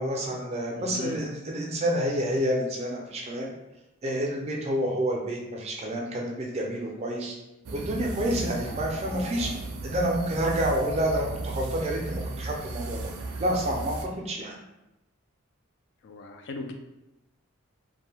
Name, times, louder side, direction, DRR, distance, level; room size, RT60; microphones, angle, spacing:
voice 1, 0.0-3.5 4.0-7.4 7.7-9.6 9.8-13.1 13.4-14.6, right 1 dB, 30° right, -1 dB, 0.4 m, -29 dB
voice 2, 0.8-1.2 16.0-16.7, left 3 dB, 55° left, 4 dB, 0.3 m, -37 dB
sound 1, 7.6-14.0, right 2 dB, 85° right, 0.4 m, -35 dB
2.5 x 2.2 x 3.3 m, 0.94 s
head